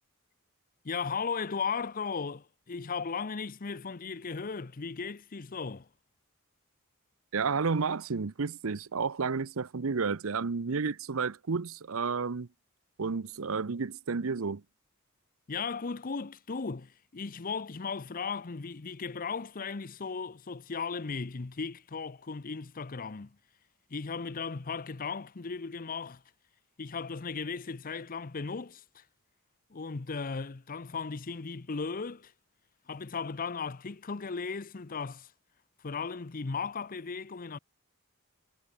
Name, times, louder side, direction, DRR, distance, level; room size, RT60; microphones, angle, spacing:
voice 1, 0.8-5.9 15.5-23.4 23.9-26.2 26.8-29.0 29.7-32.3 32.9-35.3 35.8-37.6, left 5 dB, 40° left, 0.7 m, -36 dB
voice 2, 7.3-12.5 13.0-14.6, right 5 dB, 70° right, 0.7 m, -31 dB
head